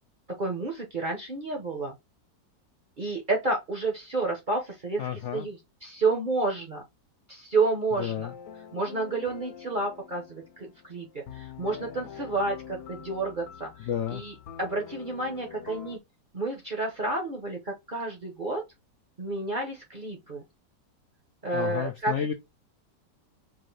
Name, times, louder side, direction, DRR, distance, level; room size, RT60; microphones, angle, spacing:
voice 1, 0.4-2.0 3.0-5.0 5.3-6.8 7.3-8.3 8.7-13.7 14.1-16.0 16.3-18.6 19.2-20.4 21.4-22.1, right 3 dB, 45° right, 0.6 m, -30 dB
voice 2, 5.0-5.5 8.0-8.3 13.8-14.2 21.5-22.3, left 9 dB, 90° left, 0.6 m, -31 dB
sound 1, 8.2-16.0, left 8 dB, 70° left, 1.2 m, -45 dB
4.6 x 2.6 x 3.1 m
omnidirectional pair, 1.9 m